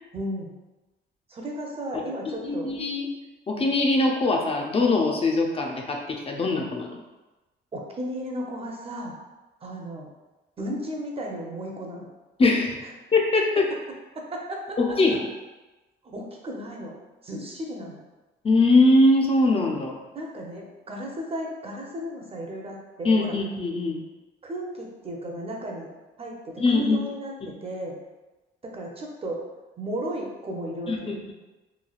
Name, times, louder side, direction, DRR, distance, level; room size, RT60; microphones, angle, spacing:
voice 1, 0.1-0.5 1.3-2.7 7.7-9.1 9.6-10.1 10.6-12.1 14.2-14.8 16.0-16.9 17.2-18.0 20.1-23.3 24.4-25.9 26.2-28.0 28.6-29.4 29.8-31.2, right 1 dB, 30° right, -1 dB, 0.6 m, -34 dB
voice 2, 2.2-3.1 3.5-7.0 12.4-12.8 13.1-13.7 14.8-15.3 18.4-20.0 23.0-24.0 26.6-27.0 27.4-27.5 30.9-31.3, left 2 dB, 30° left, 0 dB, 0.4 m, -22 dB
3.2 x 2.2 x 2.3 m, 1.1 s
cardioid pair, 90°, 20 cm